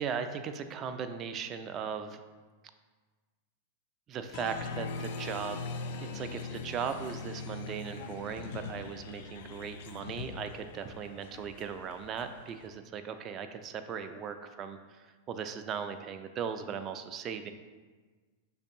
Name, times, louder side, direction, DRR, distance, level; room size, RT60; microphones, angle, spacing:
voice 1, 0.0-2.2 4.1-5.6 6.0-17.5, right 7 dB, 35° right, 8 dB, 0.3 m, -38 dB
Applause, 4.3-12.7, left 4 dB, 65° left, 0.4 m, -41 dB
6.2 x 2.6 x 2.6 m, 1.4 s
hypercardioid pair, 100°, 0 cm